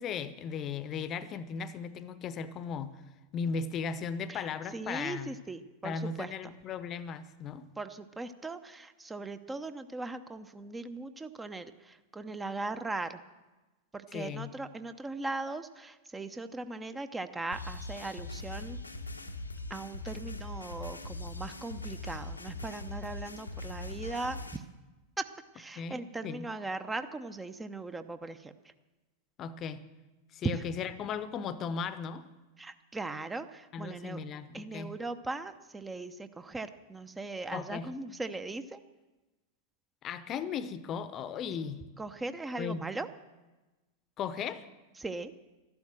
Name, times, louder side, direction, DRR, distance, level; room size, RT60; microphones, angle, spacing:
voice 1, 0.0-2.9 3.3-5.3 5.8-7.7 14.1-14.6 25.8-26.5 29.4-29.8 30.3-32.3 33.7-34.9 37.5-37.9 40.0-41.8 42.6-42.9 44.2-44.7, left 6 dB, 30° left, 15 dB, 0.8 m, -37 dB
voice 2, 4.7-6.3 7.8-11.7 12.1-13.2 14.1-18.8 19.7-24.6 25.2-25.3 25.6-28.5 32.6-34.2 34.5-38.8 42.0-43.1 45.0-45.3, right 2 dB, 10° right, 10 dB, 0.7 m, -39 dB
sound 1, 17.5-24.6, left 2 dB, 80° left, 1.0 m, -41 dB
13.0 x 11.5 x 7.7 m, 1.1 s
figure-of-eight pair, 90°, 0 cm